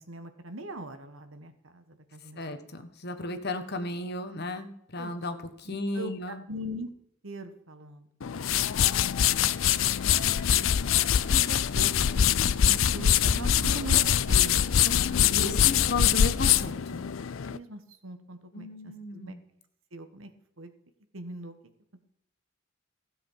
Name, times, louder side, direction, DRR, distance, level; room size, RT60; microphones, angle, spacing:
voice 1, 0.0-2.7 5.0-5.1 5.6-6.9 7.2-8.1 11.3-14.6 15.3-16.3 17.5-19.4 19.9-20.7 21.1-21.6, right 1 dB, 75° right, 9 dB, 1.5 m, -41 dB
voice 2, 2.3-6.4 14.8-17.0 18.5-19.4, left 2 dB, 50° left, 8 dB, 1.5 m, -34 dB
sound 1, 8.2-17.6, left 9 dB, 70° left, 0.5 m, -24 dB
15.5 x 7.8 x 5.7 m, 0.75 s
head